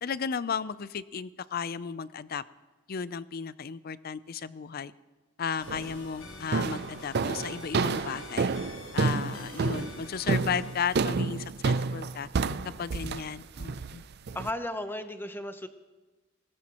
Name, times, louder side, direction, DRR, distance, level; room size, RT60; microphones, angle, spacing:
voice 1, 0.0-2.4 2.9-4.9 5.4-8.5 8.9-12.3 12.6-14.0, left 6 dB, 50° left, 17 dB, 0.5 m, -34 dB
sound 1, 5.6-10.8, left 4 dB, 75° left, 1.2 m, -47 dB
sound 2, 5.7-6.0 6.5-14.5, right 4 dB, 55° right, 0.5 m, -29 dB
voice 2, 14.3-15.7, left 1 dB, 10° left, 9 dB, 0.8 m, -35 dB
20.0 x 18.0 x 3.0 m, 1.2 s
head